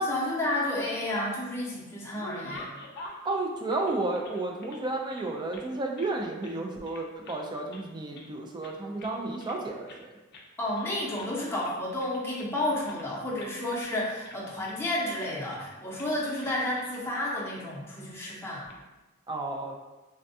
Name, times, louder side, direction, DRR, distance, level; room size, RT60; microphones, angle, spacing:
voice 1, 0.0-2.7 10.6-18.6, left 1 dB, 10° left, -6 dB, 0.7 m, -31 dB
sound 1, 0.7-1.5 1.9-4.8 5.1-6.1 6.4-6.6 6.8-7.4 7.7-8.3 8.6-9.6 9.9-10.1 10.3-10.5 10.7-11.3 11.6-13.5 13.8-14.0 14.2-15.2 15.5-15.7 16.0-16.1 16.4-17.0 17.4-17.5 18.4-18.8, left 2 dB, 50° left, 0.4 m, -47 dB
voice 2, 3.2-10.1 19.3-19.7, right 2 dB, 20° right, 1 dB, 0.3 m, -32 dB
3.3 x 2.2 x 2.6 m, 1.1 s
head